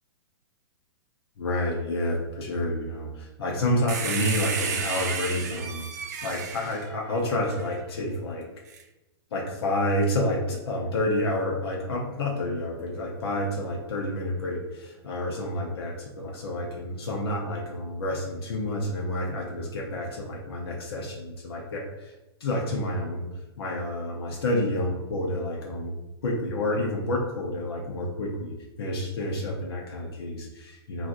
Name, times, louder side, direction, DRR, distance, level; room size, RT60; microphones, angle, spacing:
voice 1, 1.4-8.5 9.3-22.1 22.4-23.2 23.6-26.0 26.2-31.1, left 1 dB, 65° left, -2 dB, 0.7 m, -29 dB
sound 1, 3.9-7.7 8.7-8.8, right 5 dB, 40° right, 0.4 m, -32 dB
3.9 x 2.4 x 2.4 m, 0.97 s
hypercardioid pair, 175°, 14 cm